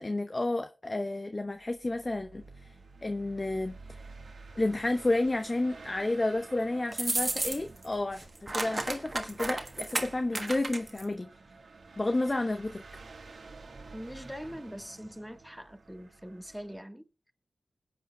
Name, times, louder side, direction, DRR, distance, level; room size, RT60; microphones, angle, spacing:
voice 1, 0.0-2.8 3.0-3.8 4.6-11.3 12.0-12.8, left 2 dB, 35° left, 0.8 m, -31 dB
sound 1, 1.6-16.8, right 3 dB, 75° right, 2.0 m, -51 dB
sound 2, 6.9-7.8 8.1-11.0, right 2 dB, 35° right, 1.4 m, -33 dB
voice 2, 13.9-17.1, equal, 5° right, 1.3 m, -43 dB
21.0 x 8.0 x 2.2 m
cardioid pair, 45°, 0 cm